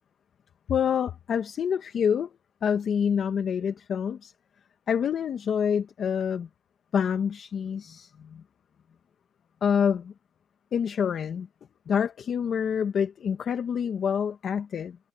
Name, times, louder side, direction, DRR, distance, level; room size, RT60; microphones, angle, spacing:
voice 1, 0.7-2.3 2.6-4.3 4.9-6.5 6.9-8.4 9.6-10.1 10.7-11.5 11.9-15.0, left 7 dB, 40° left, 1.1 m, -27 dB
cardioid pair, 160°, 0 cm